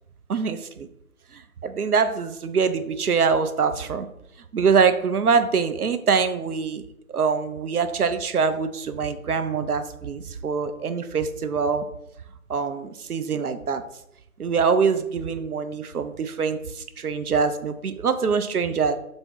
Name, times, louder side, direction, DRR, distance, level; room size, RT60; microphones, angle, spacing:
voice 1, 0.3-0.9 1.3-4.1 4.5-6.8 7.1-11.8 12.5-13.8 14.4-18.9, right 5 dB, 90° right, 10 dB, 0.5 m, -24 dB
3.5 x 2.7 x 3.0 m, 0.80 s
figure-of-eight pair, 180°, 43 cm